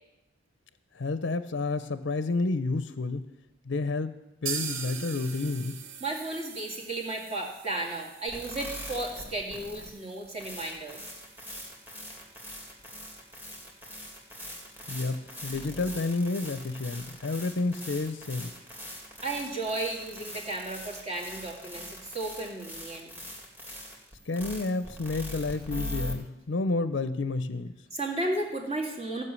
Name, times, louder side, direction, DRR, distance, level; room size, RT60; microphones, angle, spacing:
voice 1, 0.9-3.3 3.7-4.2 4.4-5.8 14.9-18.5 24.3-27.7, left 3 dB, 65° left, 12 dB, 0.6 m, -30 dB
sound 1, 4.5-12.2 12.5-12.6 12.9-13.0 13.4-13.5, right 7 dB, 80° right, 0.9 m, -42 dB
voice 2, 6.0-11.0 19.2-23.1 27.9-29.2, right 2 dB, 35° right, 0 dB, 2.3 m, -34 dB
sound 2, 8.3-26.1, equal, 10° right, 2.1 m, -42 dB
15.0 x 5.7 x 8.3 m, 0.94 s
head